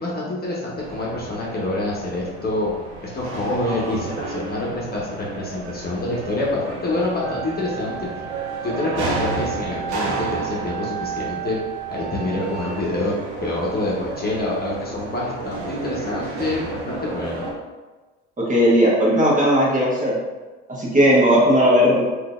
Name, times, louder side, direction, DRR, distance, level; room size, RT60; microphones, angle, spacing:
voice 1, 0.0-2.7 3.0-8.1 8.6-11.6 11.9-13.1 13.4-17.4, left 2 dB, 30° left, -5 dB, 1.1 m, -26 dB
sound 1, 0.8-17.5, right 2 dB, 90° right, 0.7 m, -32 dB
Wind instrument woodwind instrument, 7.2-12.7, right 12 dB, 50° left, 1.0 m, -32 dB
voice 2, 18.5-20.1 20.8-22.2, equal, 25° right, -5 dB, 1.2 m, -16 dB
3.7 x 2.7 x 2.5 m, 1.3 s
hypercardioid pair, 65°, 33 cm